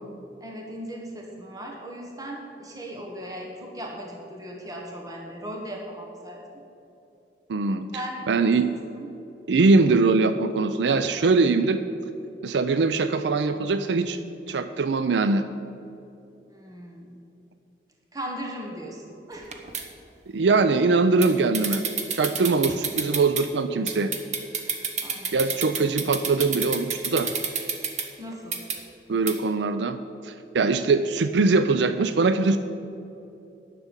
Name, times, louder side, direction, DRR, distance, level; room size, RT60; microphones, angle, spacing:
voice 1, 0.4-6.6 7.9-9.1 16.5-17.2 18.1-19.5 25.0-25.4 28.2-28.6, equal, 20° right, 0 dB, 1.3 m, -38 dB
voice 2, 7.5-7.9 8.3-8.7 9.5-11.8 12.4-14.2 14.5-15.4 20.3-21.8 22.1-24.1 25.3-27.3 29.1-30.0 30.2-32.6, right 3 dB, 85° right, 11 dB, 0.4 m, -22 dB
sound 1, 19.4-19.8 21.2-21.3 21.5-23.4 23.9-28.1 28.5-28.8 29.3-29.4, right 6 dB, 40° right, 1.1 m, -29 dB
10.5 x 6.8 x 8.9 m, 2.9 s
head